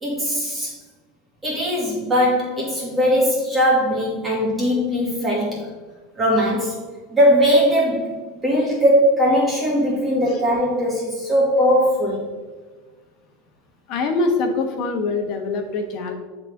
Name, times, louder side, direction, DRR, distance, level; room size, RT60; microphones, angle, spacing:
voice 1, 0.0-0.8 1.4-5.7 6.2-6.8 7.1-8.2 8.4-12.2, equal, 15° right, -4 dB, 2.0 m, -19 dB
voice 2, 13.9-16.1, left 3 dB, 50° left, 4 dB, 1.1 m, -23 dB
9.6 x 4.1 x 3.5 m, 1.3 s
supercardioid pair, 130°, 0 cm